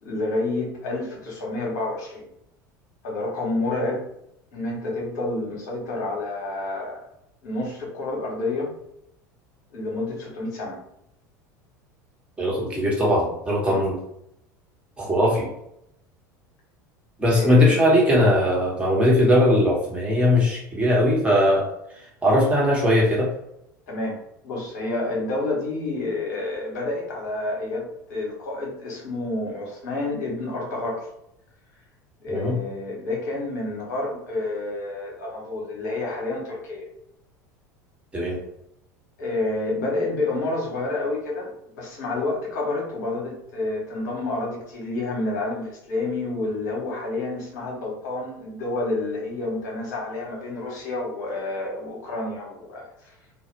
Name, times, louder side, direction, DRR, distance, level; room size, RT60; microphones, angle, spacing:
voice 1, 0.0-2.3 3.0-4.0 4.5-7.0 7.4-8.7 9.7-10.8 13.7-13.8 17.3-17.7 23.9-24.2 24.4-31.1 32.2-36.9 39.2-53.1, left 2 dB, 65° left, -2 dB, 1.0 m, -29 dB
voice 2, 12.4-14.0 15.0-15.5 17.2-21.7 22.2-23.3 32.3-32.6 38.1-38.4, left 1 dB, 10° right, -4 dB, 1.1 m, -19 dB
2.4 x 2.1 x 3.0 m, 0.77 s
figure-of-eight pair, 75°, 10 cm